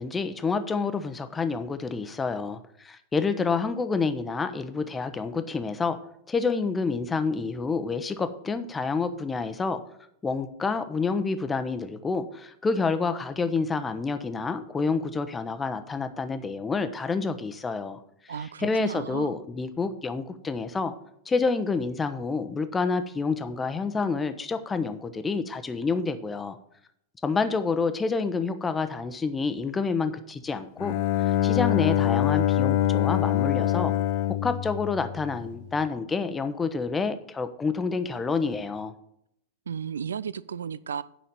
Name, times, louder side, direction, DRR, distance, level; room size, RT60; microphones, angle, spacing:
voice 1, 0.0-6.0 6.3-9.8 10.2-18.0 18.6-20.9 21.3-26.6 27.2-33.9 34.4-38.9, left 4 dB, 15° left, 0.9 m, -28 dB
voice 2, 18.3-19.3 39.7-41.0, right 7 dB, 70° right, 0.4 m, -34 dB
Bowed string instrument, 30.8-35.6, left 12 dB, 50° left, 0.5 m, -24 dB
9.2 x 5.6 x 6.8 m
figure-of-eight pair, 90°, 0 cm